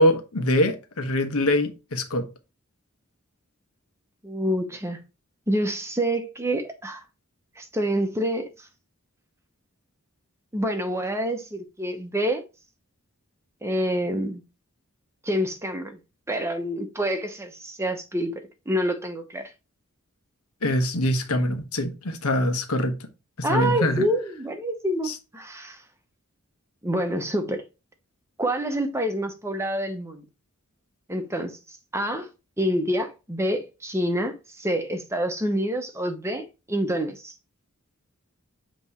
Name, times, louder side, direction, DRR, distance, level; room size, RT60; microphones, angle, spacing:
voice 1, 0.0-2.3 20.6-23.0 23.4-24.1 25.0-25.1, left 1 dB, 80° left, 1.2 m, -23 dB
voice 2, 4.2-5.0 5.5-7.0 7.6-8.5 10.5-12.4 13.6-14.4 15.2-16.0 16.3-18.3 18.7-19.5 23.4-25.8 26.8-27.6 28.4-30.2 31.1-31.6 31.9-32.3 32.6-37.3, equal, 10° right, 0.8 m, -27 dB
7.8 x 3.0 x 4.3 m
head